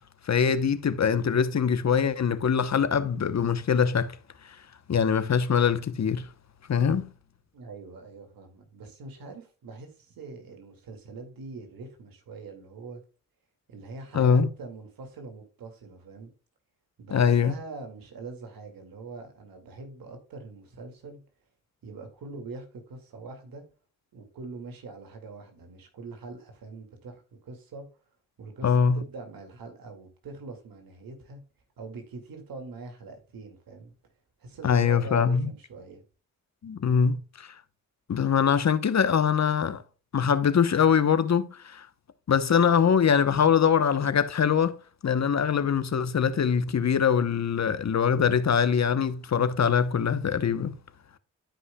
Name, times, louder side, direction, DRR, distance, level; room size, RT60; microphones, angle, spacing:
voice 1, 0.2-4.2 4.9-6.3 6.7-7.1 14.1-14.5 17.1-17.5 28.6-29.0 34.6-35.5 36.6-37.5 38.1-39.8 40.1-41.9 42.3-44.8 45.0-50.7, left 7 dB, 50° left, 0.9 m, -23 dB
voice 2, 7.5-13.0 13.7-16.3 17.0-21.2 21.8-23.6 24.1-27.9 28.4-31.4 31.8-33.9 34.4-36.0, right 3 dB, 85° right, 2.2 m, -43 dB
12.5 x 5.5 x 2.2 m
cardioid pair, 50°, 34 cm